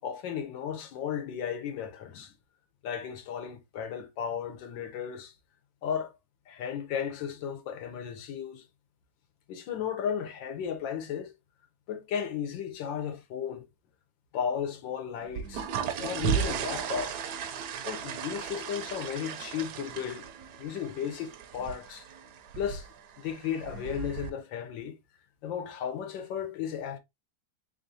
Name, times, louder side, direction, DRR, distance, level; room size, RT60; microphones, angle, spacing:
voice 1, 0.0-2.3 2.8-5.3 5.8-6.1 6.5-8.6 9.5-11.4 11.9-13.7 14.3-15.7 16.0-17.2 17.8-20.3 20.6-22.0 22.5-22.9 23.2-25.0 25.4-27.0, left 8 dB, 75° left, 1.4 m, -34 dB
sound 1, 15.2-24.3, right 8 dB, 70° right, 1.0 m, -35 dB
3.7 x 3.6 x 2.6 m
omnidirectional pair, 2.1 m